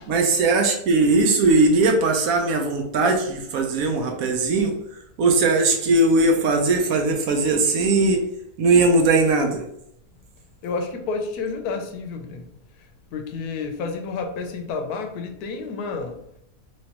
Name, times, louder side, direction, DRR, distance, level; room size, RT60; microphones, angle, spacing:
voice 1, 0.1-4.7 5.2-8.2 8.6-9.6, right 3 dB, 70° right, 4 dB, 1.1 m, -19 dB
voice 2, 10.6-12.4 13.1-16.2, left 4 dB, 90° left, 5 dB, 1.1 m, -30 dB
3.3 x 3.1 x 2.8 m, 0.74 s
omnidirectional pair, 1.6 m